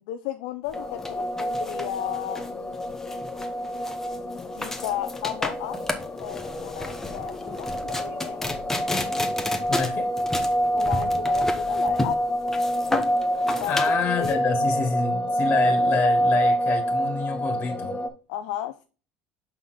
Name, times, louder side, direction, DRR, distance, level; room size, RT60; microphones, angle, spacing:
voice 1, 0.0-2.8 4.5-5.8 6.2-8.4 10.7-12.3 13.6-14.8 18.3-18.8, left 12 dB, 80° left, 0.5 m, -34 dB
sound 1, 0.7-18.1, equal, 25° left, 1.3 m, -27 dB
sound 2, 0.7-14.3, left 2 dB, 10° left, 1.2 m, -32 dB
voice 2, 9.7-10.1 13.7-18.0, left 5 dB, 45° left, 1.8 m, -28 dB
5.9 x 5.6 x 4.1 m
supercardioid pair, 85°, 4 cm